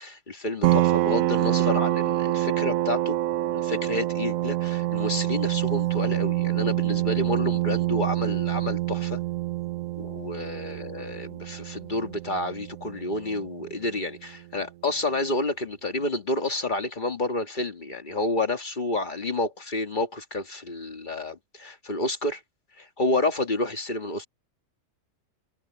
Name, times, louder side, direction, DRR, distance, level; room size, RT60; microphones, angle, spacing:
voice 1, 0.0-3.2 3.5-9.2 10.0-22.4 22.8-24.3, left 2 dB, 35° left, 1.9 m, -29 dB
sound 1, 0.6-13.9, right 16 dB, 85° right, 1.0 m, -26 dB
omnidirectional pair, 1.4 m